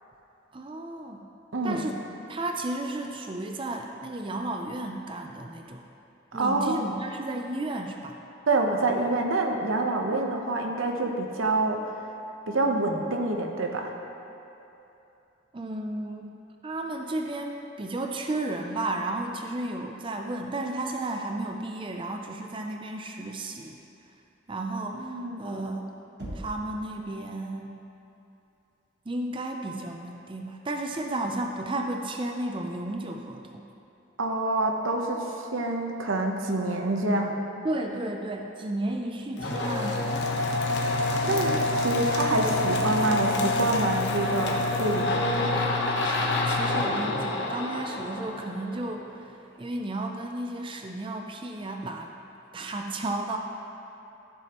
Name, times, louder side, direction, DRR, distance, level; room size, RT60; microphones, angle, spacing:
voice 1, 0.5-1.3 1.6-2.0 2.3-5.8 6.3-8.2 15.5-16.3 16.6-23.8 24.5-25.9 26.3-27.8 29.1-33.4 37.6-40.1 46.0-52.1 52.5-53.4, right 2 dB, 25° right, 3 dB, 0.4 m, -33 dB
voice 2, 1.5-1.8 6.3-7.1 8.5-11.8 12.5-13.9 24.9-25.5 34.2-37.4 41.2-45.1, right 2 dB, 90° right, 2 dB, 0.9 m, -27 dB
Knock, 26.2-26.8, right 1 dB, 60° right, 1.5 m, -38 dB
sound 1, 39.4-48.9, left 2 dB, 60° left, 1.0 m, -27 dB
13.5 x 7.2 x 3.0 m, 2.9 s
head